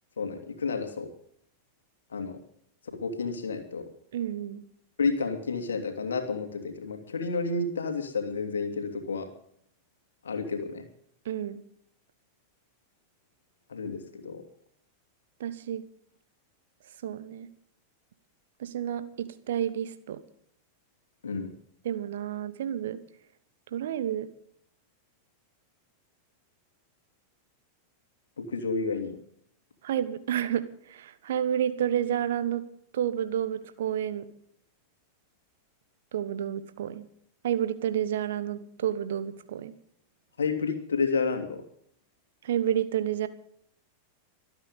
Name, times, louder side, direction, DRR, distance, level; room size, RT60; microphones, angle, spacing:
voice 1, 0.2-1.1 2.1-2.4 3.0-3.9 5.0-9.3 10.2-10.8 13.7-14.4 21.2-21.5 28.4-29.2 40.4-41.6, left 4 dB, 70° left, 6 dB, 2.8 m, -30 dB
voice 2, 4.1-4.6 11.2-11.6 15.4-15.9 17.0-17.5 18.6-20.2 21.8-23.0 23.7-24.3 29.8-32.6 32.9-34.3 36.1-37.1 37.4-39.7 42.4-43.3, right 10 dB, 60° right, 13 dB, 1.2 m, -30 dB
24.5 x 8.9 x 5.3 m, 0.68 s
figure-of-eight pair, 90°, 0 cm